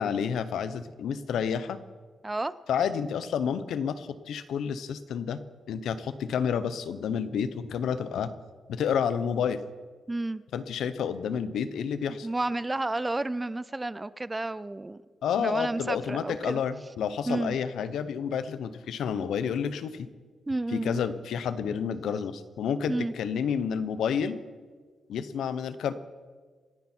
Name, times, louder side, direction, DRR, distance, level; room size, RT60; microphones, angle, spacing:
voice 1, 0.0-1.8 2.7-5.4 5.7-8.3 8.7-9.6 10.5-12.3 15.2-20.1 20.7-24.4 25.1-25.9, left 7 dB, 90° left, 13 dB, 0.9 m, -30 dB
voice 2, 10.1-10.4 12.2-15.0 15.4-16.6 17.3-17.6 20.5-21.0 22.9-23.1, right 2 dB, 15° right, 17 dB, 0.5 m, -31 dB
27.5 x 9.7 x 4.5 m, 1.5 s
cardioid pair, 125°, 0 cm